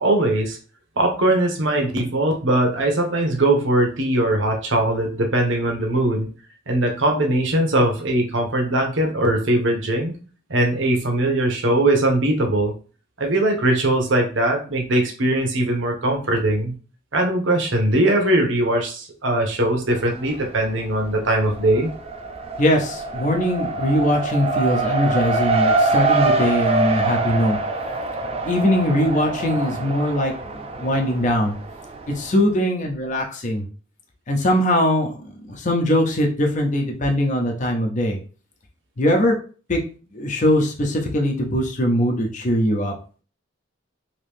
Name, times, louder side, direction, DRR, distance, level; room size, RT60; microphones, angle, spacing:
voice 1, 0.0-0.6 1.0-6.3 6.7-10.1 10.5-12.7 13.2-16.7 17.1-21.9, right 1 dB, 75° right, 2 dB, 0.9 m, -20 dB
Race car auto racing, 19.9-20.6 21.0-32.3, right 3 dB, 30° right, 0.4 m, -24 dB
voice 2, 22.6-27.6 28.4-31.6 32.1-33.7 34.3-35.2 35.5-38.2 39.0-39.4 39.7-39.8 40.1-42.9, equal, 40° left, 1 dB, 0.7 m, -21 dB
3.0 x 2.7 x 3.4 m, 0.38 s
head